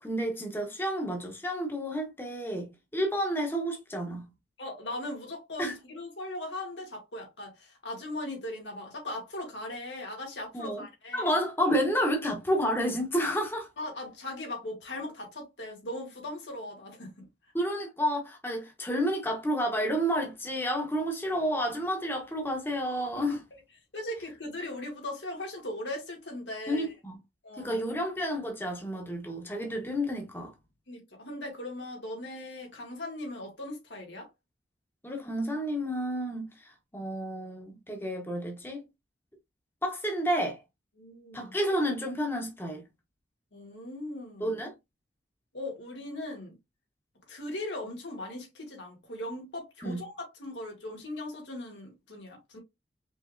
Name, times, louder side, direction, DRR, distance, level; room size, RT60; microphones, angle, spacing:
voice 1, 0.0-4.3 5.6-5.7 10.5-10.8 11.1-13.7 17.5-23.4 26.7-27.2 27.6-30.5 35.0-36.5 36.9-38.8 39.8-40.6 41.3-42.8 44.4-44.7 49.8-50.0, equal, 10° left, 1.1 m, -30 dB
voice 2, 4.6-11.3 13.8-17.2 23.2-23.4 23.9-26.9 27.4-27.8 30.9-34.3 41.0-41.5 43.5-44.6 45.5-46.6 47.3-52.6, left 1 dB, 90° left, 2.2 m, -39 dB
5.1 x 3.4 x 2.5 m
head